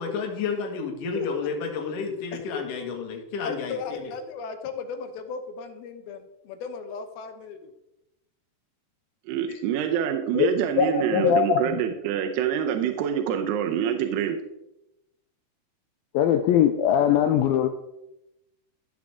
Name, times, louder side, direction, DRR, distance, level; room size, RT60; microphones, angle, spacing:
voice 1, 0.0-4.1, left 5 dB, 60° left, 1 dB, 3.0 m, -31 dB
voice 2, 3.4-7.7, left 5 dB, 75° left, 7 dB, 2.6 m, -36 dB
voice 3, 9.3-14.4, right 9 dB, 80° right, 4 dB, 2.8 m, -26 dB
voice 4, 10.8-11.6 16.1-17.7, left 9 dB, 90° left, 8 dB, 2.1 m, -21 dB
14.0 x 7.3 x 3.6 m, 0.89 s
omnidirectional pair, 4.8 m